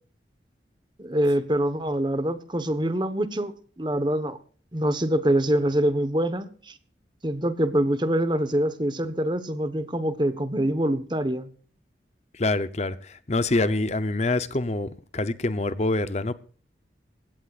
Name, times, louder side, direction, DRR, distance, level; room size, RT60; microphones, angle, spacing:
voice 1, 1.0-4.4 4.7-6.7 7.2-11.5, right 1 dB, 25° right, 1.2 m, -25 dB
voice 2, 12.3-16.3, left 2 dB, 35° left, 0.8 m, -26 dB
20.0 x 16.5 x 2.5 m
head